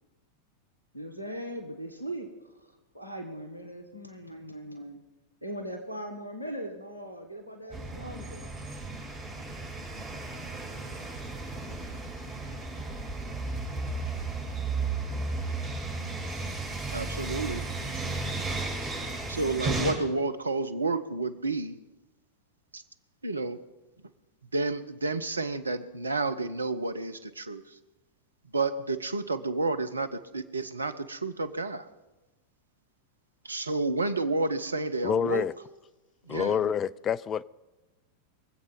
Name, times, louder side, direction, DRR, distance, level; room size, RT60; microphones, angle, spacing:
voice 1, 0.9-5.0 5.4-8.5, right 1 dB, 90° left, 1.5 m, -40 dB
sound 1, 7.7-19.9, right 3 dB, 30° right, 7.0 m, -34 dB
voice 2, 16.9-17.6 19.3-21.8 22.7-22.8 23.2-23.6 24.5-27.6 28.5-31.9 33.4-35.5 36.3-36.7, right 3 dB, 80° right, 0.8 m, -30 dB
voice 3, 35.0-35.5 36.3-37.4, left 8 dB, 25° left, 0.4 m, -27 dB
24.0 x 8.0 x 5.4 m
figure-of-eight pair, 90°, 0 cm